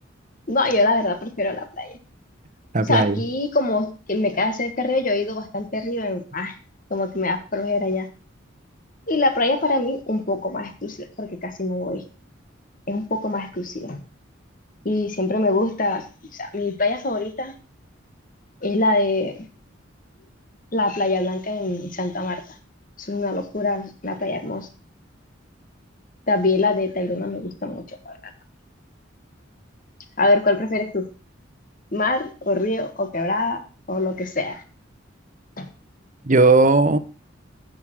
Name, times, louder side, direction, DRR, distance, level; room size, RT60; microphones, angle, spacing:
voice 1, 0.5-2.0 2.9-6.6 6.9-8.1 9.1-12.0 12.9-14.0 14.8-16.1 16.3-17.5 18.6-19.4 20.7-22.4 23.0-24.7 26.3-28.2 30.2-31.1 31.9-33.6 33.9-34.6 35.6-35.7, left 2 dB, 45° left, 1.5 m, -24 dB
voice 2, 2.7-3.2 36.3-37.0, right 3 dB, 40° right, 0.9 m, -16 dB
9.5 x 6.6 x 6.0 m
head